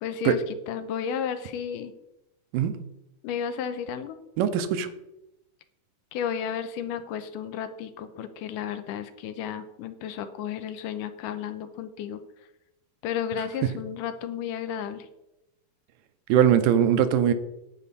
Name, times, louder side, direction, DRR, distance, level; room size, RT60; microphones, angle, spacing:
voice 1, 0.0-1.9 3.2-4.2 6.1-12.2 13.0-15.1, left 8 dB, 85° left, 10 dB, 2.3 m, -33 dB
voice 2, 4.4-4.9 16.3-17.3, right 9 dB, 85° right, 10 dB, 2.4 m, -21 dB
9.0 x 8.4 x 4.1 m, 0.89 s
omnidirectional pair, 3.8 m